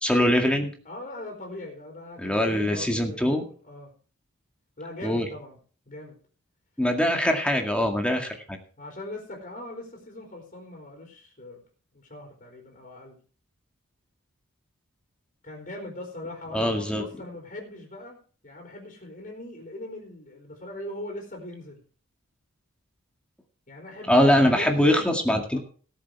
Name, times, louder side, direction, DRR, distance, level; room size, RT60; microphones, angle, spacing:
voice 1, 0.0-0.7 2.2-3.4 5.0-5.3 6.8-8.6 16.5-17.0 24.1-25.6, equal, 5° left, 3 dB, 2.0 m, -22 dB
voice 2, 0.8-3.9 4.8-5.6 5.9-6.2 8.1-8.4 8.8-11.6 11.9-13.2 15.4-18.2 18.4-21.8 23.7-25.1 25.5-25.6, left 1 dB, 40° left, 0 dB, 3.9 m, -40 dB
18.5 x 7.6 x 4.7 m, 0.41 s
head